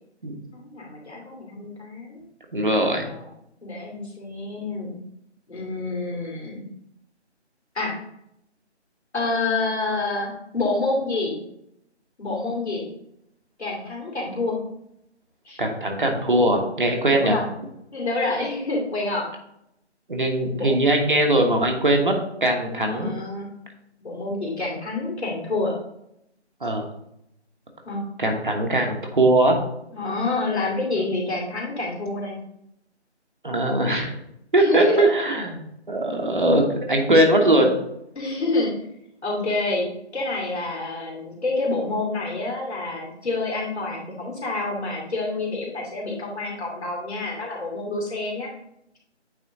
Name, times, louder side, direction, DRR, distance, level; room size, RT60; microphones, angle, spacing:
voice 1, 0.5-2.2 3.0-3.3 3.6-5.0 5.5-6.7 7.7-7.9 9.1-11.4 12.2-12.8 13.6-14.6 15.4-15.6 17.1-17.5 17.9-19.3 20.6-20.8 22.8-23.5 24.0-25.8 27.8-28.0 29.9-32.4 34.6-35.0 38.1-38.7 39.2-48.5, left 2 dB, 70° left, -2 dB, 2.8 m, -28 dB
voice 2, 2.5-3.1 15.6-17.4 20.1-22.1 22.4-23.1 26.6-26.9 28.2-29.5 33.4-34.1 34.5-35.6 35.9-37.7, right 1 dB, 45° right, 2 dB, 1.2 m, -20 dB
8.8 x 3.8 x 3.7 m, 0.79 s
figure-of-eight pair, 175°, 34 cm